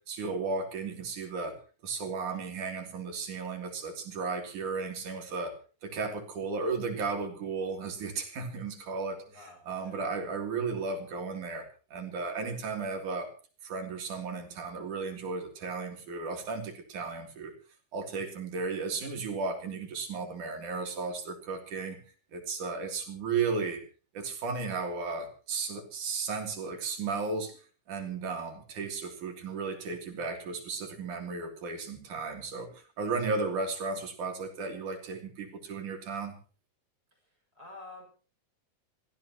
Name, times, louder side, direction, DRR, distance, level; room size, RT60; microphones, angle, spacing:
voice 1, 0.1-1.6 1.8-5.5 5.8-11.6 11.9-13.3 13.6-17.5 17.9-22.0 22.3-23.8 24.1-27.6 27.9-36.4, right 4 dB, 90° right, 4 dB, 4.6 m, -34 dB
voice 2, 9.3-10.0 37.5-38.0, left 2 dB, 30° right, 1 dB, 7.3 m, -48 dB
26.0 x 16.0 x 3.0 m, 0.37 s
omnidirectional pair, 3.4 m